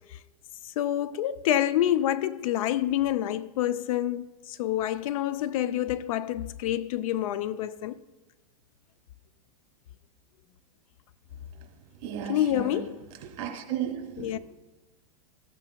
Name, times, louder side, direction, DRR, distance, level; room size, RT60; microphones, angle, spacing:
voice 1, 0.8-8.0 12.3-13.0 14.2-14.4, left 12 dB, 60° left, 0.5 m, -27 dB
voice 2, 12.0-12.8 13.2-14.4, right 10 dB, 50° right, 2.2 m, -34 dB
15.0 x 7.4 x 2.2 m
hypercardioid pair, 135°, 20 cm